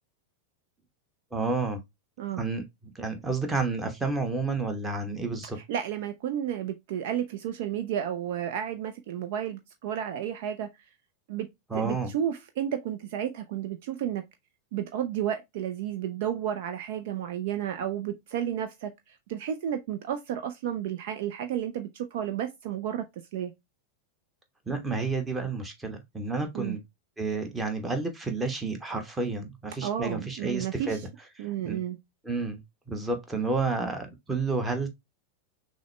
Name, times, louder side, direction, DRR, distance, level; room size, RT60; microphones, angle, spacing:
voice 1, 1.3-1.8 2.4-5.6 11.7-12.1 24.7-26.8 27.2-31.1 31.4-31.8 32.2-32.6 32.9-34.9, right 3 dB, 10° right, 1.1 m, -30 dB
voice 2, 5.6-10.7 11.3-14.2 14.7-23.0 23.3-23.5 26.5-26.8 29.8-31.0 31.4-32.0, right 10 dB, 50° right, 0.5 m, -32 dB
6.2 x 2.2 x 3.1 m
figure-of-eight pair, 90°, 0 cm